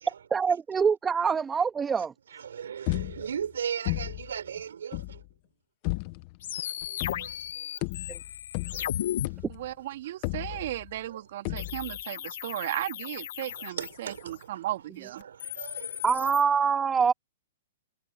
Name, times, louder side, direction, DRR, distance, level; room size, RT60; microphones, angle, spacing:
voice 1, 0.3-2.1 8.1-8.2 16.0-17.1, right 6 dB, 15° right, 2.0 m, -25 dB
voice 2, 2.3-5.2 7.2-7.3 8.7-8.8 10.5-10.6 11.1-11.2 11.5-11.6 13.8-14.3 15.1-16.0, right 8 dB, 75° right, 4.8 m, -37 dB
sound 1, 2.9-3.5 3.8-4.4 4.9-5.3 5.8-6.4 7.0-7.5 7.8-9.7 10.2-11.0 11.4-12.0, left 25 dB, 45° left, 1.3 m, -34 dB
sound 2, 6.4-9.3 11.6-14.4 15.2-16.4, left 12 dB, 65° left, 2.0 m, -36 dB
voice 3, 9.5-15.2, right 14 dB, 55° right, 3.2 m, -35 dB
hypercardioid pair, 125°, 0 cm